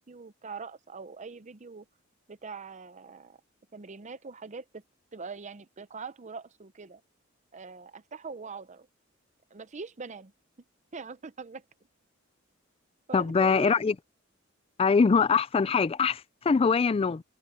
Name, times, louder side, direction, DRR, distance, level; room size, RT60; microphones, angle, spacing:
voice 1, 0.0-1.9 2.3-3.4 3.7-4.8 5.1-7.0 7.5-8.9 9.5-10.3 10.9-11.6 13.1-13.9, right 4 dB, 35° right, 0.7 m, -42 dB
voice 2, 13.1-13.9 14.8-17.2, left 5 dB, 30° left, 0.3 m, -23 dB
head